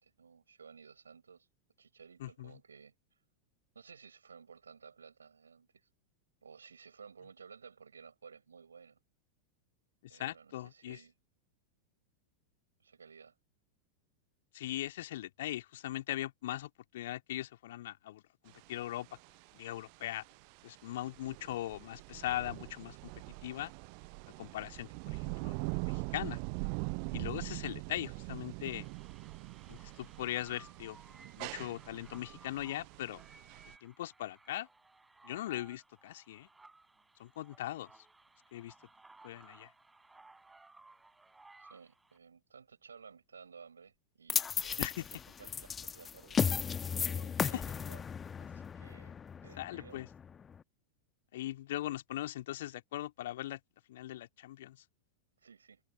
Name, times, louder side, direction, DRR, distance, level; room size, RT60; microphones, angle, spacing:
voice 1, 0.0-1.5 1.8-2.9 3.7-5.9 6.4-9.0 10.1-11.1 12.8-13.4 41.6-46.4 47.0-48.0 48.4-49.1 49.4-50.0 55.4-55.8, right 6 dB, 70° right, 5.9 m, -56 dB
voice 2, 2.2-2.5 10.0-11.0 14.5-19.1 19.5-20.2 20.6-23.1 23.4-23.7 24.4-26.4 27.1-28.9 29.7-31.0 31.4-33.2 33.8-34.7 35.2-36.5 37.2-37.9 38.5-38.7 39.2-39.7 44.8-44.9 47.4-47.6 49.6-50.1 51.3-53.6 53.9-54.8, left 14 dB, 55° left, 2.5 m, -40 dB
sound 1, 18.5-33.8, right 40 dB or more, 45° right, 0.7 m, -42 dB
sound 2, 28.6-42.2, right 3 dB, 10° right, 4.7 m, -60 dB
sound 3, 44.3-50.6, left 7 dB, 20° left, 1.3 m, -35 dB
figure-of-eight pair, 90°, 0 cm